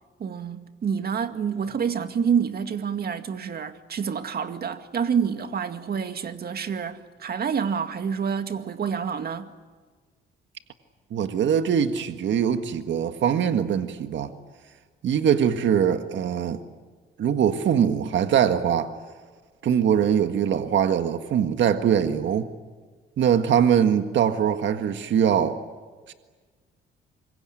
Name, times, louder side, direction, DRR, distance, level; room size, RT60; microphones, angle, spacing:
voice 1, 0.2-9.5, right 7 dB, 50° right, 2.1 m, -28 dB
voice 2, 11.1-14.3 15.0-16.6 17.2-18.9 19.6-22.5 23.2-25.6 26.1-26.2, right 8 dB, 65° right, 1.7 m, -22 dB
26.5 x 23.0 x 9.1 m
cardioid pair, 90°, 20 cm